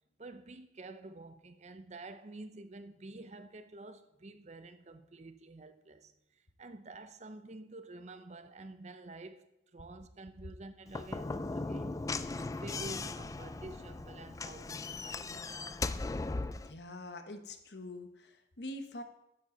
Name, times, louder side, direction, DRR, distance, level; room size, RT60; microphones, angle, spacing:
voice 1, 0.2-6.1 6.6-9.5 9.7-12.1 12.5-15.4, right 2 dB, 40° right, 0.6 m, -49 dB
Slam / Knock, 10.9-16.7, left 3 dB, 20° left, 0.3 m, -38 dB
voice 2, 16.6-19.0, left 1 dB, 65° left, 1.1 m, -45 dB
12.5 x 9.5 x 3.9 m
head